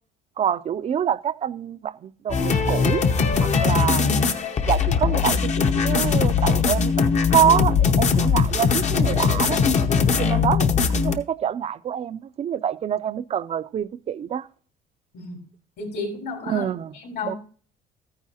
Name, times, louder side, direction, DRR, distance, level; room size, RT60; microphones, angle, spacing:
voice 1, 0.4-3.1 3.4-4.2 4.7-6.9 7.3-9.6 10.2-14.5 16.5-16.9 17.2-17.3, right 9 dB, 40° right, 0.4 m, -26 dB
sound 1, 2.3-11.1, left 5 dB, 45° left, 0.8 m, -20 dB
voice 2, 15.8-16.7 16.9-17.4, left 3 dB, 70° left, 3.8 m, -32 dB
13.5 x 9.6 x 2.8 m
cardioid pair, 110°, 17 cm